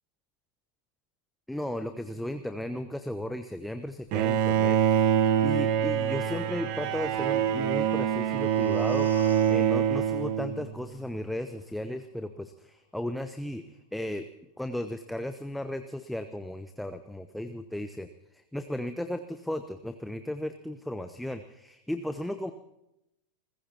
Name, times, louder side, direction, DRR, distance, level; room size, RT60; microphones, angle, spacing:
voice 1, 1.5-9.1 9.5-14.3 14.6-18.1 18.3-22.5, left 1 dB, ahead, 9 dB, 0.8 m, -35 dB
Bowed string instrument, 4.1-10.9, right 9 dB, 45° right, 1.3 m, -25 dB
sound 1, 7.7-11.5 11.9-12.0, left 5 dB, 70° left, 2.9 m, -47 dB
29.0 x 15.0 x 2.9 m, 0.87 s
figure-of-eight pair, 90°, 0 cm